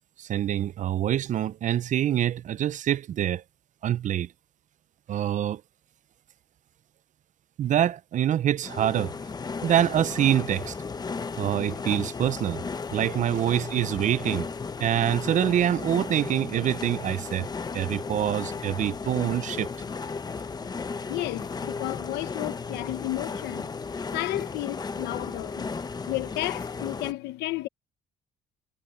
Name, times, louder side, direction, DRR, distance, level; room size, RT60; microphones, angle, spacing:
voice 1, 0.2-3.4 3.8-4.3 5.1-5.6 7.6-9.1 9.6-10.8 11.4-12.6 12.9-14.5 14.8-17.5 17.7-19.7, right 11 dB, 45° right, 0.6 m, -25 dB
sound 1, 8.6-27.1, left 4 dB, 25° left, 0.9 m, -35 dB
voice 2, 21.1-23.7 24.1-25.7 26.1-27.7, left 17 dB, 85° left, 1.0 m, -32 dB
cardioid pair, 110°, 17 cm